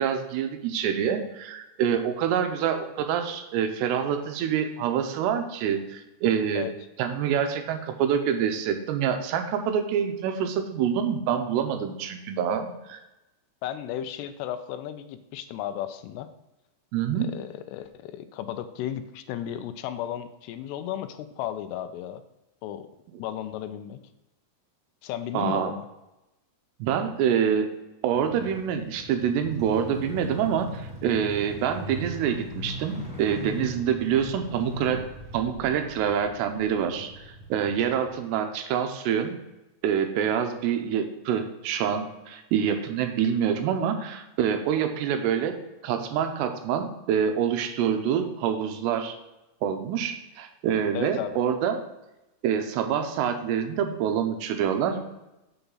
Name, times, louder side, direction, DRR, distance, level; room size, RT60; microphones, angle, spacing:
voice 1, 0.0-6.7 7.0-13.0 16.9-17.3 25.3-25.7 26.8-27.7 28.0-35.1 35.3-39.4 39.8-45.6 45.8-49.1 49.6-51.8 52.4-55.0, right 8 dB, 90° right, 7 dB, 2.9 m, -26 dB
voice 2, 13.6-16.3 17.2-22.2 22.6-22.9 23.2-24.0 25.0-25.9 50.9-51.4, left 11 dB, 85° left, 9 dB, 2.7 m, -34 dB
sound 1, 28.1-38.1, left 1 dB, 5° right, 0.9 m, -40 dB
6.9 x 6.9 x 3.9 m, 0.97 s
omnidirectional pair, 4.7 m